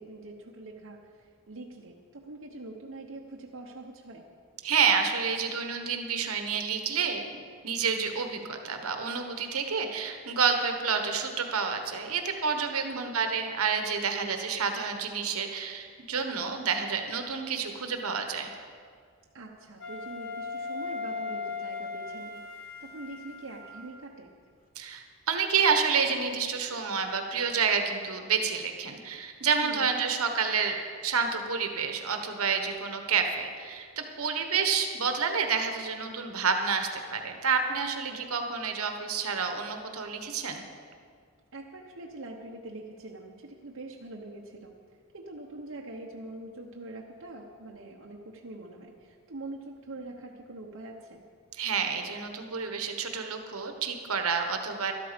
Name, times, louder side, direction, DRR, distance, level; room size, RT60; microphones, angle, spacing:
voice 1, 0.0-4.2 12.8-13.1 19.3-24.3 29.6-29.9 38.1-38.5 41.5-44.7 45.1-51.2, right 2 dB, 60° right, -2 dB, 0.9 m, -44 dB
voice 2, 4.6-18.5 24.7-40.6 51.6-54.9, right 5 dB, 75° right, 5 dB, 1.2 m, -29 dB
Wind instrument woodwind instrument, 19.8-24.1, left 4 dB, 60° left, 1.4 m, -38 dB
12.5 x 12.0 x 5.1 m, 2.1 s
head